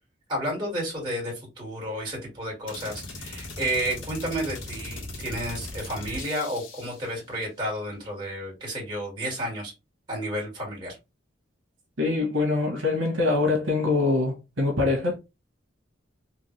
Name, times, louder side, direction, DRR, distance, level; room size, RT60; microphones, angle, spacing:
voice 1, 0.3-9.7 10.1-11.0, right 1 dB, 20° right, 2.1 m, -31 dB
sound 1, 2.7-7.1, left 2 dB, 80° left, 1.2 m, -39 dB
voice 2, 12.0-15.2, left 3 dB, 80° right, 1.3 m, -24 dB
3.6 x 2.6 x 3.2 m
head